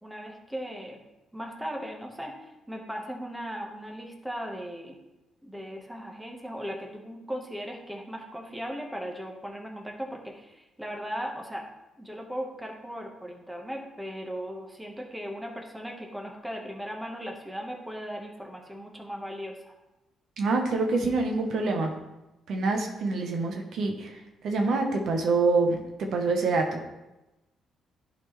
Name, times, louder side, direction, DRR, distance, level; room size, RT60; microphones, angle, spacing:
voice 1, 0.0-1.0 1.3-2.3 2.7-5.0 5.4-11.7 12.0-19.7, equal, 5° right, 1 dB, 1.2 m, -37 dB
voice 2, 20.4-21.9 22.5-24.1 24.4-26.8, right 3 dB, 65° right, 3 dB, 1.0 m, -26 dB
10.5 x 4.2 x 3.2 m, 1.0 s
cardioid pair, 90°, 0 cm